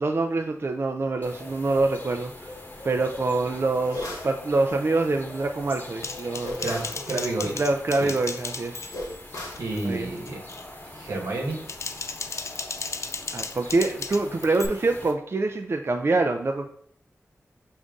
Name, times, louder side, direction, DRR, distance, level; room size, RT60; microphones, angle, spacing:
voice 1, 0.0-2.5 2.8-6.6 7.6-8.9 9.8-10.1 13.3-16.7, right 3 dB, 50° right, 5 dB, 0.4 m, -25 dB
sound 1, 1.2-15.1, left 1 dB, 35° left, 1.0 m, -43 dB
sound 2, 3.9-4.4 6.4-7.0 8.9-9.7, left 1 dB, 80° left, 0.9 m, -35 dB
Typing, 6.0-9.2 9.5-9.9 10.3-10.6 11.4-14.7, left 4 dB, 60° left, 0.4 m, -35 dB
voice 2, 6.6-7.6 8.0-8.1 9.6-10.6 10.8-11.6, right 2 dB, 85° right, 0 dB, 1.1 m, -30 dB
5.1 x 2.6 x 3.5 m, 0.65 s
cardioid pair, 45°, 6 cm